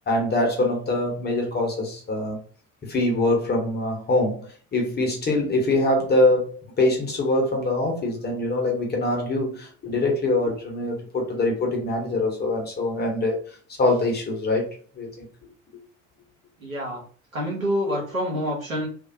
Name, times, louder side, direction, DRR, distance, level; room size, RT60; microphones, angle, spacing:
voice 1, 0.1-2.4 2.8-14.7 14.9-15.2, left 2 dB, 25° left, 1.0 m, -24 dB
voice 2, 16.6-17.0 17.3-18.9, equal, 90° right, 1.0 m, -27 dB
2.5 x 2.4 x 2.7 m
figure-of-eight pair, 65°, 39 cm